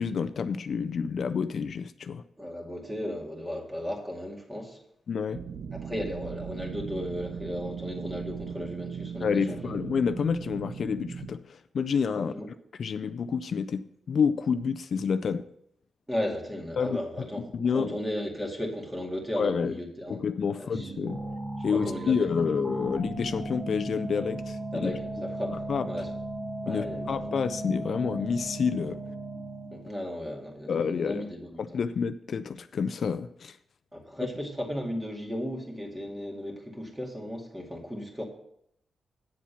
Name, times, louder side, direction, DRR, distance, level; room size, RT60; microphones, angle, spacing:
voice 1, 0.0-2.3 5.1-5.4 9.2-12.3 12.7-15.5 16.8-18.0 19.4-19.8 20.1-21.2 21.6-24.9 25.7-25.9 26.7-29.0 30.7-31.3 31.6-33.6, left 6 dB, 60° left, 0.4 m, -29 dB
voice 2, 2.4-4.8 5.8-9.7 12.1-12.5 16.1-17.4 17.7-20.2 20.6-20.9 21.7-22.3 24.7-25.0 25.4-25.6 25.9-26.1 26.6-27.2 29.7-31.6 33.9-38.2, left 1 dB, 10° right, 2.1 m, -35 dB
sound 1, 5.3-11.3, right 6 dB, 55° right, 0.9 m, -38 dB
sound 2, 20.7-30.0, right 2 dB, 25° right, 1.6 m, -36 dB
8.4 x 7.3 x 5.7 m
cardioid pair, 105°, 0 cm